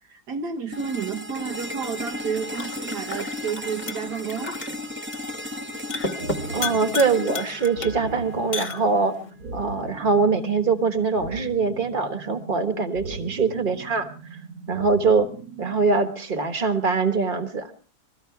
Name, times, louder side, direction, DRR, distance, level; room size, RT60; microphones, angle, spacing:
voice 1, 0.0-4.6, right 6 dB, 85° right, 3 dB, 1.8 m, -31 dB
sound 1, 0.7-8.7, left 1 dB, 10° right, 0.5 m, -35 dB
sound 2, 1.3-9.3, left 3 dB, 30° left, 1.4 m, -35 dB
sound 3, 6.2-16.2, right 4 dB, 65° right, 1.9 m, -39 dB
voice 2, 6.5-9.1 9.5-14.4 14.7-15.3 15.6-17.7, right 4 dB, 35° right, 9 dB, 1.4 m, -23 dB
21.5 x 14.0 x 4.7 m, 0.40 s
omnidirectional pair, 1.7 m